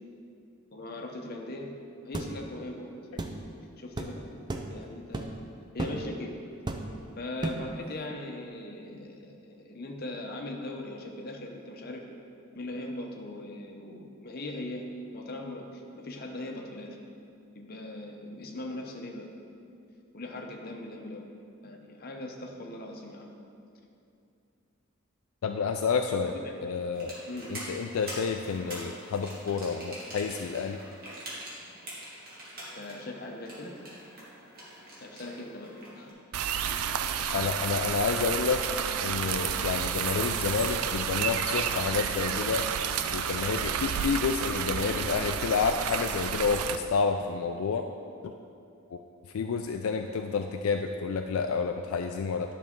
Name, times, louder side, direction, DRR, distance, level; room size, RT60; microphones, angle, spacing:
voice 1, 0.7-1.7 2.0-2.9 3.8-4.3 4.7-5.3 5.7-6.3 7.2-12.0 12.5-14.9 15.1-17.0 17.5-19.3 20.1-21.3 21.6-23.3 26.2-26.5 27.3-27.6 32.7-33.8 35.0-36.2, left 1 dB, 45° left, 1 dB, 0.8 m, -40 dB
sound 1, 2.1-2.3 3.2-3.4 4.0-4.1 4.5-4.7 5.1-5.4 5.8-6.0 6.7-7.0 7.4-7.7, right 2 dB, 20° right, 0.4 m, -33 dB
voice 2, 25.4-26.3 26.6-27.2 27.5-30.8 37.3-38.6 39.0-42.7 43.1-47.9 48.2-48.3 48.9-49.0 49.3-52.5, left 5 dB, 70° left, 5 dB, 0.3 m, -29 dB
sound 2, 26.9-36.1, right 1 dB, 40° right, 2.1 m, -44 dB
sound 3, 36.3-46.8, right 8 dB, 80° right, 0.4 m, -30 dB
10.5 x 5.9 x 3.7 m, 2.6 s
head